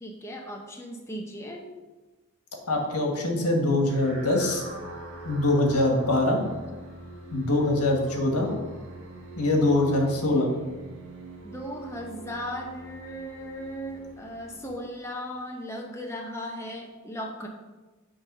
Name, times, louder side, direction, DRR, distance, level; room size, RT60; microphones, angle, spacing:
voice 1, 0.0-1.7 11.4-17.5, equal, 10° left, 0 dB, 0.8 m, -37 dB
voice 2, 2.7-4.6 5.2-6.4 7.3-8.5 9.4-10.5, left 2 dB, 85° left, 1 dB, 1.5 m, -23 dB
sound 1, 3.8-15.3, right 1 dB, 60° right, 1.7 m, -43 dB
8.6 x 3.6 x 5.4 m, 1.2 s
head